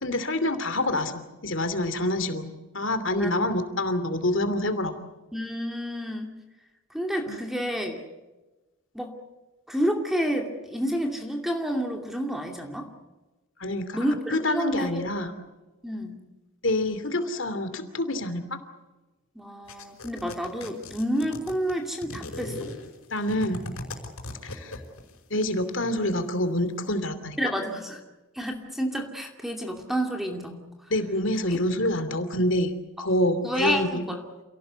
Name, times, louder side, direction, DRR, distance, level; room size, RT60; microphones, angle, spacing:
voice 1, 0.0-4.9 7.3-7.4 13.6-15.3 16.6-18.6 23.1-23.6 24.4-24.8 25.3-27.4 30.9-32.7 33.0-34.0, left 1 dB, 60° left, 10 dB, 2.8 m, -27 dB
voice 2, 5.3-6.3 6.9-8.0 8.9-9.1 9.7-12.9 13.9-15.0 15.8-16.2 19.4-22.7 27.4-28.0 28.3-30.6 33.4-34.2, equal, ahead, 2 dB, 2.6 m, -29 dB
sound 1, 19.7-25.2, left 2 dB, 80° left, 5.3 m, -38 dB
28.5 x 18.0 x 8.2 m, 1.1 s
head